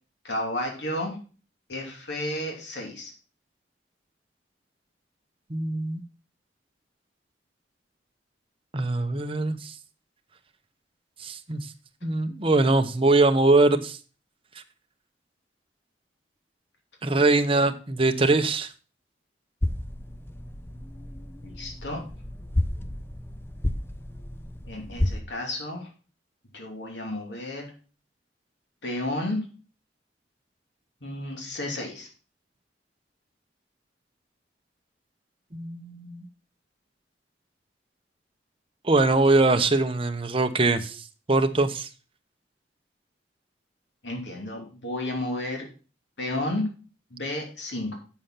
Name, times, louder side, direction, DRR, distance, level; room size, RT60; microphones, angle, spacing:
voice 1, 0.2-1.2 1.7-3.1 21.4-22.0 24.7-25.9 26.5-27.7 28.8-29.4 31.0-32.1 44.0-45.7 46.2-46.7 47.1-48.0, left 1 dB, 80° left, 2.8 m, -32 dB
voice 2, 5.5-6.0 8.7-9.7 11.2-11.7 12.0-14.0 17.0-18.7 35.5-36.3 38.8-41.9, right 2 dB, 30° right, 0.9 m, -22 dB
sound 1, 19.6-25.2, left 1 dB, 15° left, 0.5 m, -31 dB
7.9 x 7.1 x 5.7 m
head